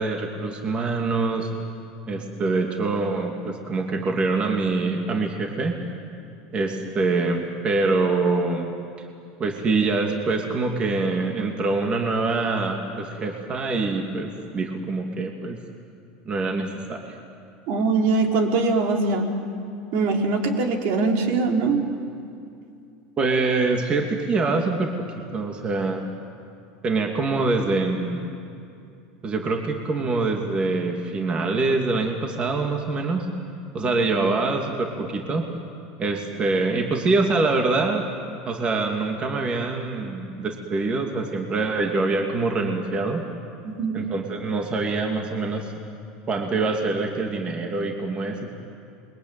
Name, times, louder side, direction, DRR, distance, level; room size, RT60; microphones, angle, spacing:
voice 1, 0.0-1.5 2.1-5.8 6.5-8.7 9.4-15.6 16.2-17.2 23.2-25.1 25.3-26.1 26.8-28.3 29.2-33.3 33.7-35.5 36.0-38.0 38.5-43.2 43.9-45.7 46.3-48.6, right 3 dB, 25° right, 2 dB, 2.6 m, -25 dB
voice 2, 17.7-19.4 19.9-21.9 33.7-33.9 43.6-44.0, right 3 dB, 60° right, 2 dB, 4.0 m, -22 dB
28.5 x 22.5 x 9.3 m, 2.5 s
supercardioid pair, 135°, 4 cm